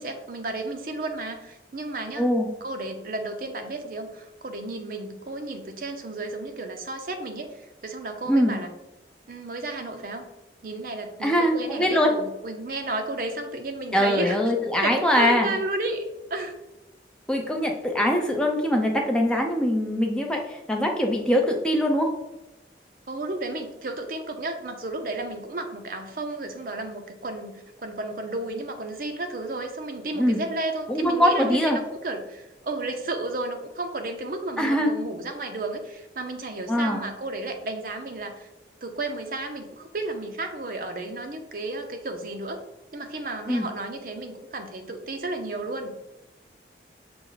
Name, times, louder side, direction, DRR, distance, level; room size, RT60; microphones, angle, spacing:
voice 1, 0.0-2.3 2.6-8.7 9.3-10.3 10.6-14.4 14.8-16.0 16.3-16.5 23.1-38.5 38.8-42.6 42.9-45.9, right 2 dB, 50° right, 5 dB, 0.6 m, -33 dB
voice 2, 2.2-2.5 8.3-8.6 11.2-12.1 13.9-15.5 17.3-22.1 30.2-30.4 30.9-31.8 34.6-34.9 36.7-37.1 43.5-43.7, equal, 5° left, 1 dB, 0.5 m, -22 dB
5.9 x 2.1 x 3.9 m, 0.97 s
head